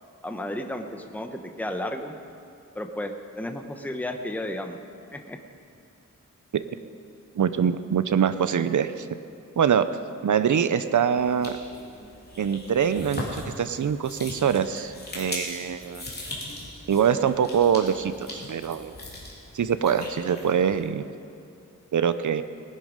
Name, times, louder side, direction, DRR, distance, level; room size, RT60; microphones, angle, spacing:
voice 1, 0.2-2.2 2.7-4.8 5.1-5.4, left 1 dB, 5° left, 5 dB, 0.9 m, -33 dB
voice 2, 7.4-9.1 9.6-9.9 10.2-11.6 12.4-16.0 16.9-19.0 19.5-21.0 21.9-22.4, right 7 dB, 70° right, 12 dB, 0.7 m, -24 dB
sound 1, 11.2-20.9, left 1 dB, 30° left, 3.2 m, -39 dB
19.5 x 11.0 x 5.2 m, 2.5 s
wide cardioid pair, 120°, 32 cm